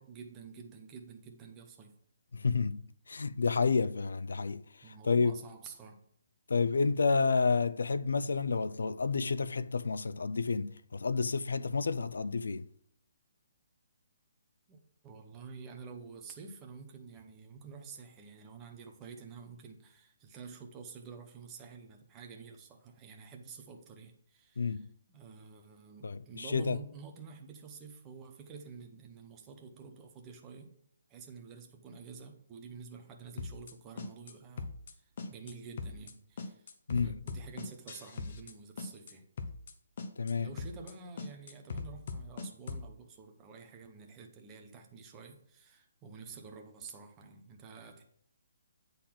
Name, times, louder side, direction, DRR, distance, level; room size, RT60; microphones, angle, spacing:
voice 1, 0.0-2.0 4.8-6.1 14.7-30.7 31.1-36.7 36.9-39.3 40.4-48.0, right 5 dB, 15° right, 0.8 m, -49 dB
voice 2, 2.3-5.3 6.5-12.7 24.6-24.9 26.0-26.8 36.9-37.1 40.2-40.5, left 4 dB, 90° left, 0.4 m, -30 dB
sound 1, 33.4-33.7 34.0-34.3 34.6-34.9 35.2-35.5 35.8-36.1 36.4-38.5 38.8-39.1 39.4-39.7 40.0-40.3 40.6-40.9 41.2-42.9, left 4 dB, 40° left, 0.8 m, -40 dB
8.4 x 4.0 x 6.0 m
hypercardioid pair, 175°, 0 cm